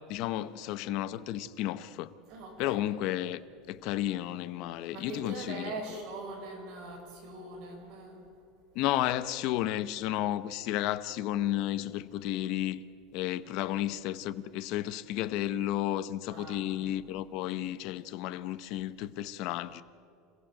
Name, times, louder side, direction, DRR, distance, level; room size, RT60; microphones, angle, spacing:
voice 1, 0.1-2.1 2.6-3.4 3.7-6.0 8.7-12.8 13.1-19.8, left 13 dB, 50° left, 0.8 m, -32 dB
voice 2, 2.3-2.8 4.9-8.2 13.6-13.8 16.3-16.6, right 2 dB, 45° right, 6.0 m, -42 dB
28.0 x 15.0 x 7.6 m
supercardioid pair, 165°, 0 cm